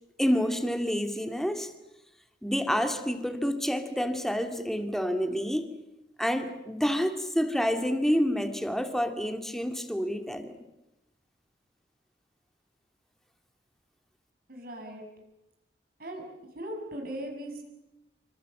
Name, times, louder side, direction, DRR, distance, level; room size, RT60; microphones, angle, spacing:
voice 1, 0.2-1.7 2.4-5.7 6.2-10.6, equal, ahead, 7 dB, 2.3 m, -28 dB
voice 2, 14.5-15.0 16.0-16.2 16.5-17.6, right 1 dB, 55° right, 2 dB, 6.8 m, -38 dB
27.0 x 25.5 x 7.7 m, 0.93 s
head